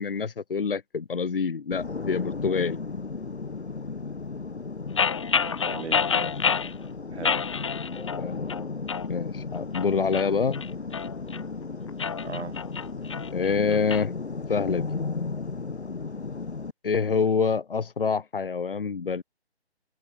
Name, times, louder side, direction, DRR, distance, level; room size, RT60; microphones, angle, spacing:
voice 1, 0.0-2.8 8.2-8.4 9.1-10.6 13.3-14.1 14.5-14.9 16.8-19.2, left 5 dB, 55° left, 1.8 m, -26 dB
sound 1, 1.7-16.7, left 4 dB, 85° left, 4.6 m, -35 dB
sound 2, 5.0-6.7 7.2-8.2 8.5-9.1 9.6-11.4 11.9-14.0, left 6 dB, 25° left, 1.5 m, -28 dB
voice 2, 5.3-6.7 7.1-7.5 12.2-12.6 17.0-17.2, right 4 dB, 85° right, 2.8 m, -40 dB
hypercardioid pair, 175°, 33 cm